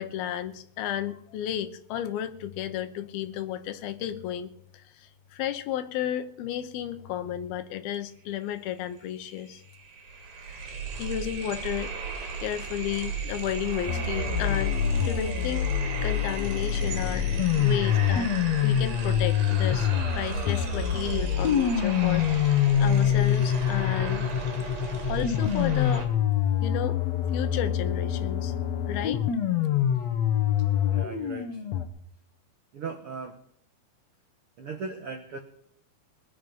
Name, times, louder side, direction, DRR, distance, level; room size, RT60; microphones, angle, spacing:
voice 1, 0.0-9.6 11.0-11.9 12.4-14.8 15.0-15.7 16.0-17.3 17.6-18.3 18.6-22.3 22.8-24.3 25.1-26.1 26.6-27.0 27.3-28.5 28.9-29.2, left 11 dB, 85° left, 10 dB, 2.9 m, -32 dB
sound 1, 9.0-9.1 9.4-26.1, right 6 dB, 90° right, 4.4 m, -35 dB
sound 2, 13.9-31.9, left 9 dB, 60° left, 1.9 m, -26 dB
voice 2, 30.9-31.6 32.7-33.3 34.6-35.4, right 4 dB, 70° right, 3 dB, 1.3 m, -37 dB
21.0 x 10.0 x 5.3 m, 0.72 s
omnidirectional pair, 4.2 m